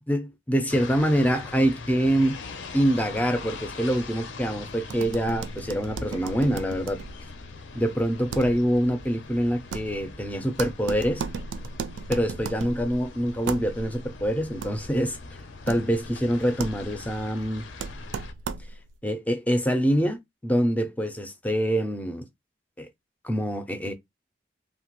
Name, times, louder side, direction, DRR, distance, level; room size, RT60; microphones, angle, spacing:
voice 1, 0.1-2.4 2.7-7.0 7.7-11.2 12.1-15.2 15.7-17.6 19.0-22.3 22.8-22.9 23.2-23.9, equal, 10° left, 0.4 m, -25 dB
sound 1, 0.7-18.3, left 4 dB, 85° left, 0.5 m, -42 dB
sound 2, 4.8-19.0, right 5 dB, 85° right, 0.3 m, -37 dB
2.8 x 2.2 x 2.9 m
head